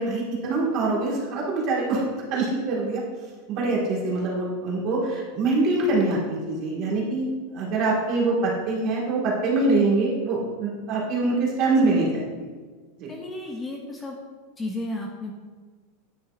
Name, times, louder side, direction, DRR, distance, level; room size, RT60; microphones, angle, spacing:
voice 1, 0.0-2.0 2.3-3.0 3.5-12.5 13.0-13.1, right 3 dB, 40° right, -4 dB, 1.8 m, -24 dB
voice 2, 13.1-14.2 14.6-15.3, left 1 dB, 10° left, 1 dB, 0.6 m, -33 dB
9.4 x 5.5 x 2.5 m, 1.4 s
supercardioid pair, 160°, 0 cm